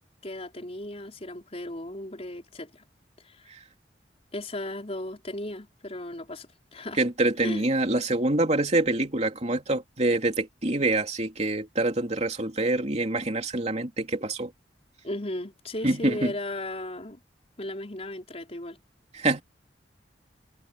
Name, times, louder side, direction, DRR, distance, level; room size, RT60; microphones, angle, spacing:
voice 1, 0.2-2.8 3.2-3.5 4.3-7.0 7.4-7.7 15.0-17.2 17.6-18.8, left 1 dB, 35° left, 4.4 m, -36 dB
voice 2, 7.0-14.5 15.8-16.3 19.1-19.4, right 2 dB, 40° right, 3.0 m, -26 dB
head